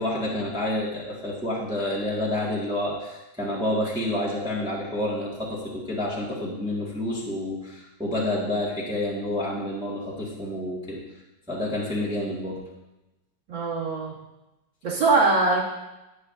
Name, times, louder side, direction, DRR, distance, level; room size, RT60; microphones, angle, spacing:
voice 1, 0.0-11.0 11.5-12.6, left 1 dB, 5° right, -6 dB, 1.6 m, -29 dB
voice 2, 13.5-14.2 14.8-15.6, right 3 dB, 80° right, -7 dB, 3.0 m, -22 dB
11.0 x 9.7 x 2.6 m, 0.98 s
omnidirectional pair, 2.0 m